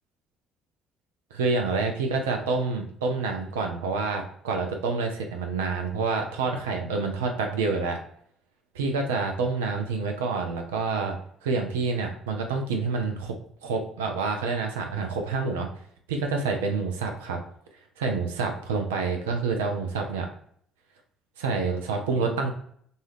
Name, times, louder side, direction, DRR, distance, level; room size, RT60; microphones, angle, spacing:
voice 1, 1.3-8.0 8.7-13.3 13.6-15.7 16.1-17.4 18.0-20.3 21.4-22.5, right 4 dB, 85° right, 3 dB, 0.4 m, -28 dB
2.6 x 2.4 x 3.3 m, 0.63 s
hypercardioid pair, 55°, 0 cm